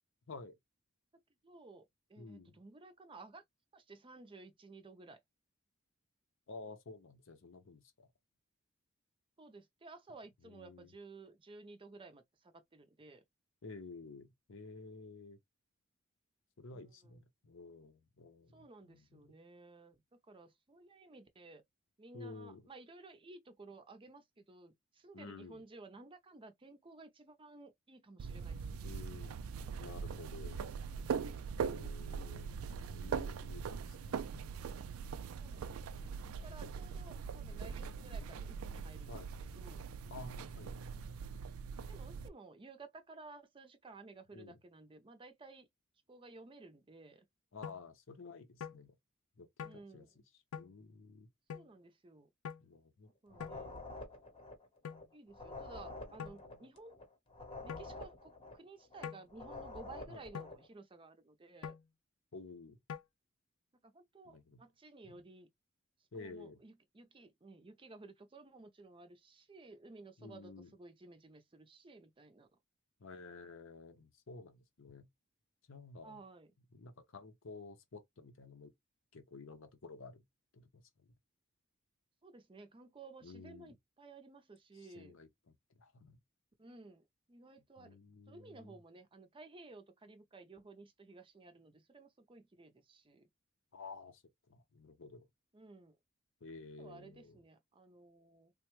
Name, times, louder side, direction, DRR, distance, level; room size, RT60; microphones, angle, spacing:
voice 1, 1.4-1.8 2.1-3.4 3.7-5.2 9.4-12.2 12.5-13.2 16.7-17.2 18.5-20.0 20.3-21.6 22.0-29.1 35.4-35.7 36.0-39.1 39.6-39.8 41.9-45.7 46.1-47.2 49.6-50.1 51.5-52.3 53.2-53.8 55.1-56.9 57.6-61.7 63.8-65.5 66.1-72.5 76.0-76.5 82.2-85.2 86.6-88.0 88.3-93.2 95.5-95.9 96.8-98.5, right 3 dB, 25° right, 0.5 m, -55 dB
voice 2, 2.2-2.6 6.5-8.1 10.4-11.0 13.6-15.4 16.6-19.3 22.1-22.7 25.1-25.6 28.8-29.4 29.8-30.7 31.6-32.5 32.8-34.2 36.0-36.7 39.1-39.3 40.1-40.7 44.3-44.6 47.5-48.9 49.4-51.3 52.6-53.8 56.5-56.6 60.1-60.2 62.3-62.8 64.2-64.6 65.0-65.2 66.1-66.6 70.2-70.7 73.0-75.1 75.7-76.2 76.7-78.7 79.1-80.2 80.5-81.1 83.2-83.8 84.7-86.2 87.8-88.8 93.7-94.2 94.5-95.3 96.4-97.4, left 3 dB, 65° left, 0.7 m, -52 dB
sound 1, 28.2-42.3, right 6 dB, 80° right, 0.4 m, -41 dB
sound 2, 47.6-47.8 48.6-48.8 49.6-49.8 50.5-50.7 51.5-51.7 52.4-52.6 53.4-53.6 54.8-55.0 56.2-56.4 57.7-57.9 59.0-59.3 60.3-60.5 61.6-61.8 62.9-63.0, left 7 dB, 85° left, 0.4 m, -44 dB
sound 3, 53.3-60.7, left 2 dB, 25° left, 0.9 m, -48 dB
3.4 x 2.2 x 3.0 m
head